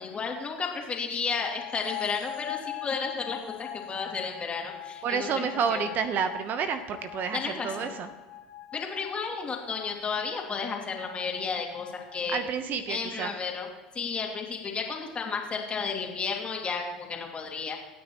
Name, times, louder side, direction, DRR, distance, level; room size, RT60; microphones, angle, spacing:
voice 1, 0.0-5.9 7.3-7.9 8.7-12.4 12.9-13.7 13.9-17.8, left 5 dB, 25° left, 1 dB, 2.7 m, -33 dB
sound 1, 1.4-12.5, left 13 dB, 55° left, 0.7 m, -42 dB
voice 2, 5.0-8.1 12.3-13.3, right 6 dB, 45° right, 10 dB, 1.0 m, -30 dB
26.0 x 9.2 x 3.1 m, 1.2 s
hypercardioid pair, 75°, 4 cm